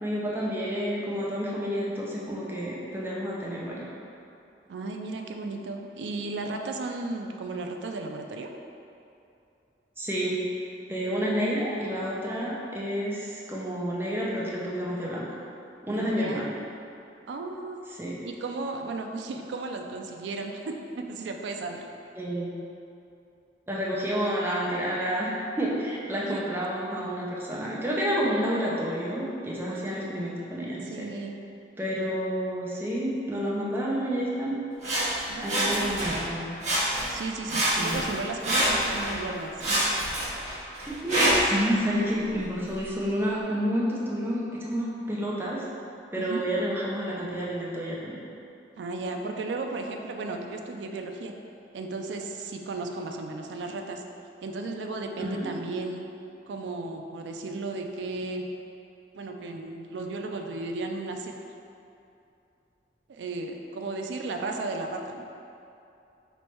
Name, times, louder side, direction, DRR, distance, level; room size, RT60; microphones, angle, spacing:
voice 1, 0.0-3.9 10.0-10.4 10.9-15.3 15.8-16.5 18.0-18.1 22.2-22.6 23.7-31.1 31.8-34.6 35.4-36.5 37.8-38.0 40.8-45.6 46.1-48.2 55.2-55.5, equal, 10° right, -6 dB, 0.6 m, -29 dB
voice 2, 4.7-8.5 15.9-16.5 17.3-17.8 18.2-21.9 26.3-26.4 29.7-30.1 30.9-31.3 35.3-35.9 37.0-39.6 46.2-46.4 48.8-51.3 51.7-54.0 54.4-56.0 56.5-58.4 59.1-61.3 63.1-65.3, right 3 dB, 75° right, 3 dB, 0.3 m, -34 dB
Sawing, 34.8-36.3 36.6-37.2 37.5-39.2 39.6-41.6 42.3-42.4, right 1 dB, 40° right, 0.9 m, -26 dB
3.2 x 3.1 x 4.4 m, 2.7 s
head